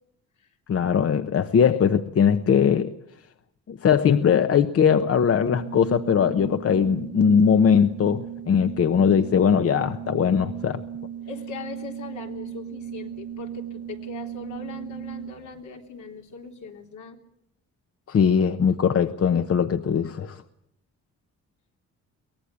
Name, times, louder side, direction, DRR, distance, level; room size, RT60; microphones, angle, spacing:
voice 1, 0.7-2.9 3.7-10.8 18.1-20.4, left 7 dB, 50° left, 1.1 m, -20 dB
Organ, 5.4-15.6, right 9 dB, 55° right, 0.8 m, -37 dB
voice 2, 11.3-17.2, left 5 dB, 75° left, 3.6 m, -40 dB
23.5 x 18.5 x 8.4 m
cardioid pair, 90°, 30 cm